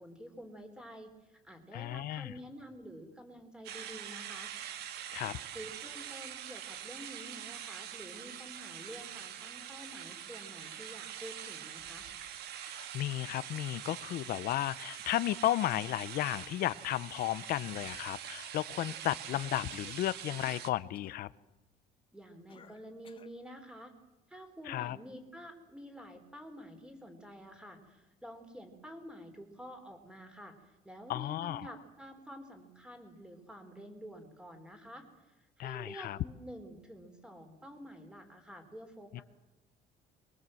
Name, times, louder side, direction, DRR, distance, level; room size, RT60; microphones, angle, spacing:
voice 1, 0.0-4.5 5.2-12.1 22.1-23.9 24.3-39.2, equal, 5° right, 6 dB, 4.0 m, -49 dB
voice 2, 1.7-2.3 5.1-5.4 12.6-21.3 24.7-25.0 31.1-31.7 35.6-36.2 39.1-39.2, left 14 dB, 60° left, 16 dB, 0.8 m, -34 dB
sound 1, 3.6-20.7, right 10 dB, 70° right, 1.9 m, -44 dB
Cough, 18.8-20.0 20.4-20.7 20.9-21.2 22.5-23.4, left 7 dB, 30° left, 1.3 m, -57 dB
23.0 x 23.0 x 7.7 m, 1.0 s
cardioid pair, 140°, 17 cm